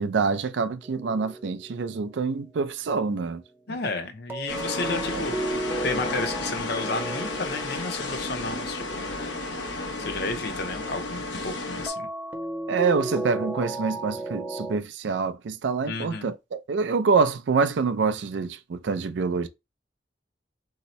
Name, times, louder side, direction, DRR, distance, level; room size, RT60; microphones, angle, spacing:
voice 1, 0.0-3.4 5.1-5.2 12.7-19.5, right 5 dB, 75° right, 0.4 m, -26 dB
sound 1, 0.8-2.3 4.3-9.9 11.9-14.8, right 2 dB, 10° right, 0.4 m, -35 dB
voice 2, 3.7-5.4 5.8-9.1 10.0-12.1 15.9-16.3, left 3 dB, 60° left, 0.6 m, -32 dB
sound 2, 4.5-11.9, left 2 dB, 85° left, 0.8 m, -32 dB
2.8 x 2.0 x 4.0 m
head